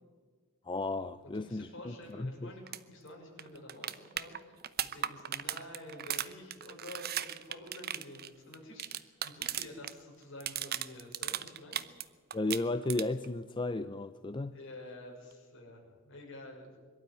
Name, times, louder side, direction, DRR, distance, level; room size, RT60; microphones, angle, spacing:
voice 1, 0.6-2.5 12.3-14.6, left 2 dB, 25° left, 11 dB, 0.5 m, -34 dB
voice 2, 1.3-11.8 14.5-16.8, left 1 dB, 60° left, 0 dB, 6.1 m, -49 dB
sound 1, 2.7-2.8 3.1-3.2 3.4-9.9 10.2-12.0 12.3-13.3 15.3-15.4, right 10 dB, 50° right, 0.8 m, -37 dB
22.5 x 12.5 x 9.7 m, 1.5 s
head